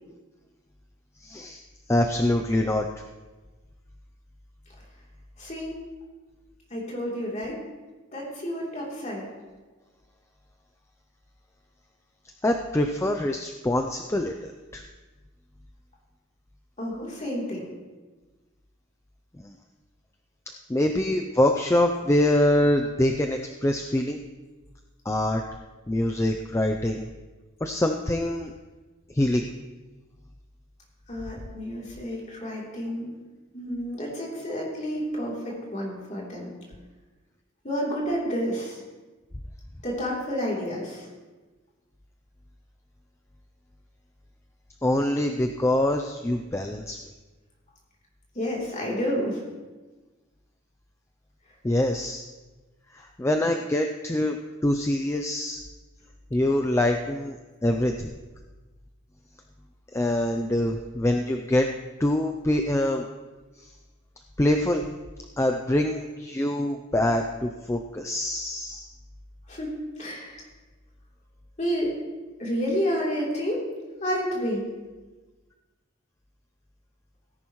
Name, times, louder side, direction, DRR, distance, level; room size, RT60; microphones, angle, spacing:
voice 1, 1.2-1.6 1.9-2.9 12.4-14.8 19.4-19.5 20.7-24.2 25.1-25.4 25.9-27.1 27.6-28.5 29.1-29.4 44.8-47.0 51.6-52.3 52.9-54.4 54.6-55.6 56.3-57.4 57.6-58.1 59.9-61.7 62.0-63.0 63.6-63.7 64.4-64.8 65.4-68.9, left 1 dB, 15° left, 4 dB, 0.4 m, -24 dB
voice 2, 5.4-5.7 6.7-7.6 8.1-9.3 16.8-17.7 31.1-33.1 33.5-36.5 37.6-38.8 39.8-41.1 48.3-49.4 69.5-70.5 71.6-71.9 72.4-73.6 74.0-74.7, equal, 35° left, -4 dB, 3.2 m, -30 dB
17.0 x 10.5 x 3.1 m, 1.2 s
head